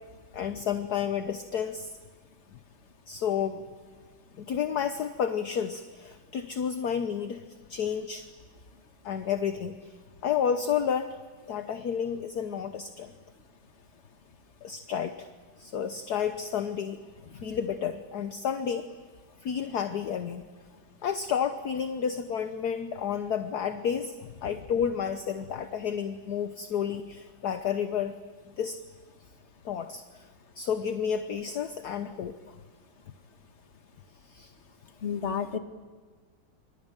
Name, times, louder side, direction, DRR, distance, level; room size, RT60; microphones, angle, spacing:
voice 1, 0.3-1.9 3.1-3.6 4.4-7.4 7.7-8.3 9.0-9.9 10.2-11.2 11.5-13.1 14.6-15.3 15.6-17.0 17.3-18.9 19.4-20.5 21.0-28.1 28.6-28.8 29.6-30.2 30.6-32.5 34.3-34.5, left 8 dB, 55° left, 9 dB, 1.4 m, -31 dB
voice 2, 35.0-35.6, left 7 dB, 35° left, 7 dB, 1.8 m, -31 dB
25.5 x 25.5 x 9.0 m, 1.5 s
omnidirectional pair, 2.2 m